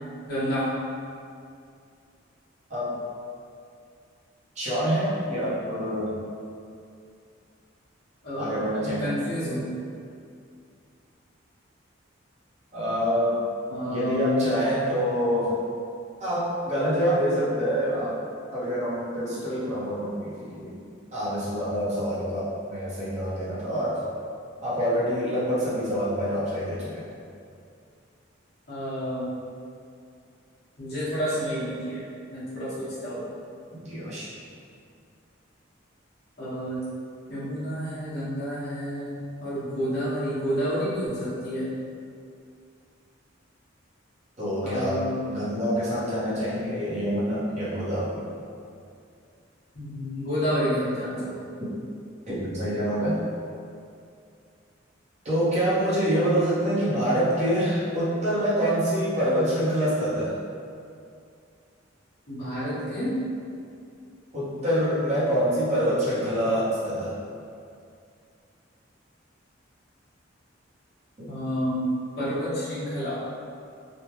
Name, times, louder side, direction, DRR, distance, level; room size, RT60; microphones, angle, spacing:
voice 1, 0.3-0.7 8.2-9.7 13.7-14.5 28.7-29.3 30.8-32.0 32.3-33.2 36.4-36.8 37.3-41.7 44.6-45.2 49.7-51.4 62.3-63.1 71.2-71.9 72.1-73.2, equal, 50° left, -12 dB, 1.3 m, -29 dB
voice 2, 4.6-6.1 8.4-9.1 12.7-13.4 13.9-15.6 16.2-18.2 18.5-20.8 21.1-24.0 24.6-27.1 33.8-34.3 44.4-48.3 51.6-51.7 52.3-53.2 55.2-60.4 64.3-67.2 71.2-71.3, equal, 35° right, -10 dB, 0.9 m, -26 dB
3.3 x 2.2 x 3.0 m, 2.4 s
head